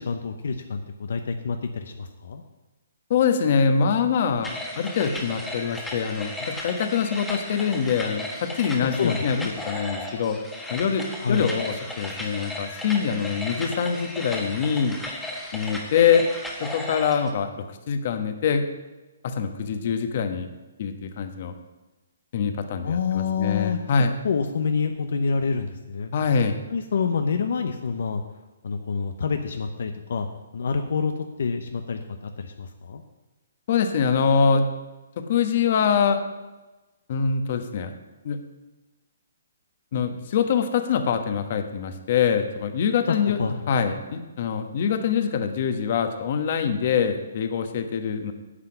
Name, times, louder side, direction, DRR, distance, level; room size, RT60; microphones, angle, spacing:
voice 1, 0.0-2.4 8.8-9.5 11.2-11.5 22.8-26.1 26.7-28.2 28.6-30.3 30.5-31.1 31.4-33.0 43.2-43.5, left 5 dB, 70° left, 6 dB, 0.9 m, -27 dB
voice 2, 3.1-9.4 9.6-10.4 10.7-15.0 15.5-16.2 16.6-17.5 17.9-18.6 19.2-20.5 20.8-21.5 22.3-24.2 26.1-26.6 33.7-34.7 35.3-36.2 37.1-37.9 38.2-38.4 39.9-43.4 43.7-48.3, left 6 dB, 50° left, 7 dB, 1.2 m, -24 dB
sound 1, 4.4-17.3, left 1 dB, 5° left, 1.4 m, -35 dB
9.9 x 5.8 x 7.9 m, 1.1 s
hypercardioid pair, 155°, 0 cm